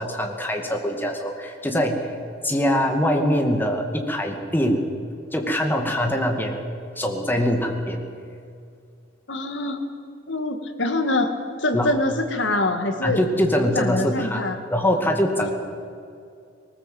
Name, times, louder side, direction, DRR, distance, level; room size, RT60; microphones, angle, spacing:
voice 1, 0.0-2.1 2.4-4.8 5.3-6.6 7.0-8.0 11.7-12.0 13.0-15.5, equal, 10° left, 3 dB, 2.1 m, -23 dB
voice 2, 9.3-9.8 10.3-11.3 11.6-13.2 13.8-14.6 15.4-15.5, left 2 dB, 70° left, 6 dB, 1.9 m, -24 dB
19.5 x 19.5 x 7.7 m, 2.4 s
head